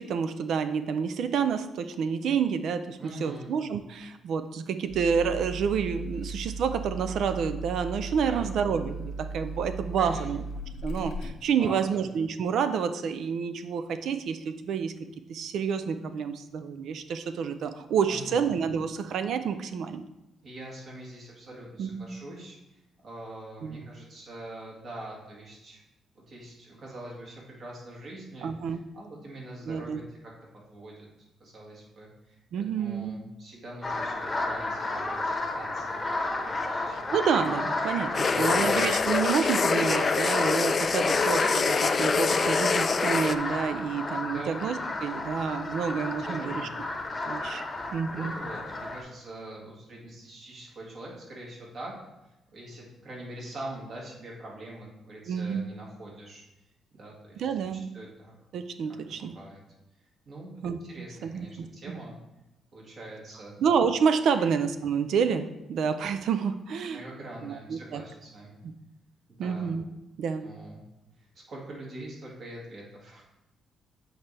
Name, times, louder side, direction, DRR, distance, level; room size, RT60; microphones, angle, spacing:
voice 1, 0.0-10.4 10.8-14.9 15.3-20.0 21.8-22.1 23.6-23.8 28.4-28.8 29.7-30.0 32.5-33.2 37.1-46.7 47.3-47.6 47.9-48.3 55.3-55.6 57.4-57.8 58.5-59.3 60.6-62.0 63.6-67.0 67.4-68.0 68.6-68.7 69.4-69.9 70.2-70.5, right 6 dB, 70° right, 10 dB, 0.4 m, -29 dB
voice 2, 3.0-3.5 8.2-8.5 10.0-10.2 11.6-12.1 18.1-18.4 20.4-22.6 23.0-25.8 26.3-31.1 31.4-32.4 32.7-36.0 36.3-37.1 38.2-38.6 44.2-44.6 46.2-46.7 47.7-51.9 52.5-56.4 56.9-57.5 57.9-58.3 59.1-59.6 60.3-60.5 60.8-62.2 62.7-63.6 64.4-64.5 66.9-68.6 69.4-69.7 70.4-70.8 71.5-73.2, right 1 dB, 55° right, -3 dB, 2.1 m, -43 dB
sound 1, 4.9-11.3, right 2 dB, 85° left, 0.8 m, -37 dB
sound 2, 33.8-49.0, left 2 dB, 25° left, 0.9 m, -32 dB
sound 3, 38.1-43.3, left 5 dB, 40° left, 0.3 m, -25 dB
7.9 x 4.2 x 3.3 m, 0.96 s
cardioid pair, 90°, 0 cm